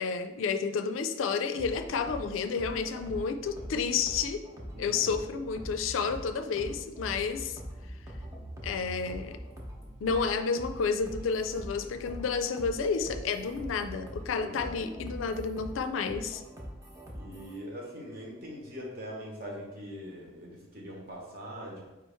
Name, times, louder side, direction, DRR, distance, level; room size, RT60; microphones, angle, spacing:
voice 1, 0.0-4.4 4.8-7.6 8.6-9.4 10.0-16.4, left 5 dB, 85° left, 9 dB, 0.4 m, -31 dB
sound 1, 1.6-17.6, equal, 15° right, 0.7 m, -43 dB
voice 2, 4.7-5.2 14.4-14.9 17.1-21.9, equal, 50° right, -2 dB, 1.1 m, -42 dB
4.7 x 3.0 x 3.4 m, 1.1 s
head